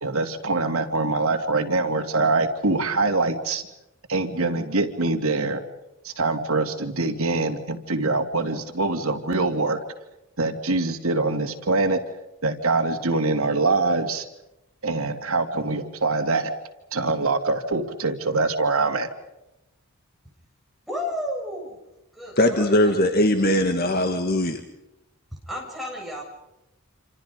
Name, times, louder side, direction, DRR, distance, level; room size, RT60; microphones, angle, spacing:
voice 1, 0.0-3.6 4.1-5.6 6.0-9.8 10.4-12.0 12.4-14.2 14.8-16.5 16.9-19.1, right 3 dB, 75° right, 5 dB, 2.9 m, -24 dB
voice 2, 20.9-21.8 22.1-22.9 25.5-26.2, left 1 dB, ahead, -2 dB, 7.5 m, -32 dB
voice 3, 22.4-24.6, left 1 dB, 45° left, 6 dB, 1.8 m, -20 dB
28.5 x 27.0 x 5.3 m, 0.93 s
head